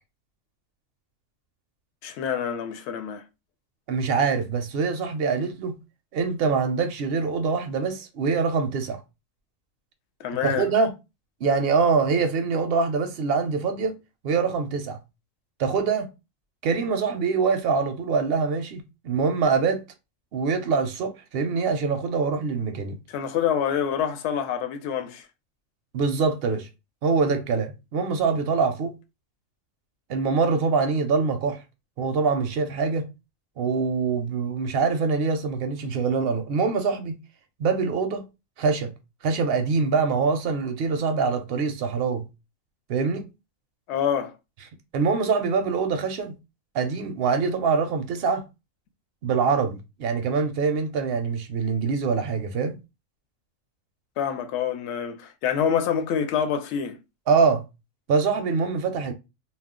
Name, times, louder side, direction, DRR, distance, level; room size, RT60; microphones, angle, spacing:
voice 1, 2.0-3.2 10.2-10.7 23.1-25.3 43.9-44.3 54.2-57.0, left 8 dB, 70° left, 0.8 m, -26 dB
voice 2, 3.9-5.8 6.1-9.0 10.4-10.9 11.4-13.9 14.2-15.0 15.6-16.1 16.6-19.8 20.3-23.0 25.9-26.7 27.0-28.9 30.1-31.6 32.0-33.1 33.6-37.2 37.6-38.2 38.6-38.9 39.2-42.3 42.9-43.3 44.9-46.3 46.7-48.4 49.2-52.8 57.3-57.6 58.1-59.1, right 5 dB, 65° right, 0.6 m, -24 dB
2.3 x 2.0 x 3.5 m
omnidirectional pair, 1.3 m